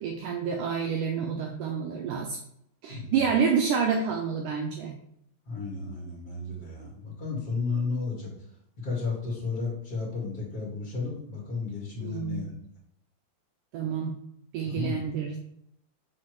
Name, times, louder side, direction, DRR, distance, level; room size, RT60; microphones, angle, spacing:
voice 1, 0.0-2.4 2.8-5.0 12.0-12.5 13.7-14.1 14.5-15.4, right 6 dB, 85° right, 1 dB, 1.8 m, -28 dB
voice 2, 5.5-8.3 8.8-12.5 14.6-15.0, left 4 dB, 35° left, -3 dB, 1.7 m, -33 dB
7.4 x 5.6 x 3.2 m, 0.72 s
omnidirectional pair, 4.7 m